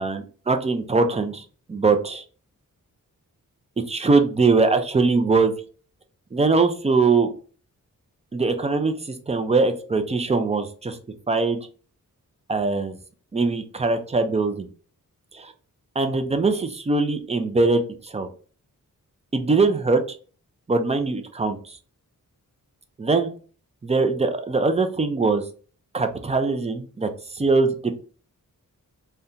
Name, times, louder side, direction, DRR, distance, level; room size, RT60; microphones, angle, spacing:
voice 1, 0.0-2.2 3.9-5.5 6.3-7.3 8.3-11.0 11.3-11.6 12.5-13.0 13.3-14.7 15.3-15.5 16.0-18.3 19.3-20.2 20.7-21.8 23.0-23.3 23.8-25.4 25.9-27.9, right 3 dB, 20° right, 8 dB, 0.4 m, -22 dB
2.7 x 2.2 x 3.6 m, 0.40 s
wide cardioid pair, 110°, 33 cm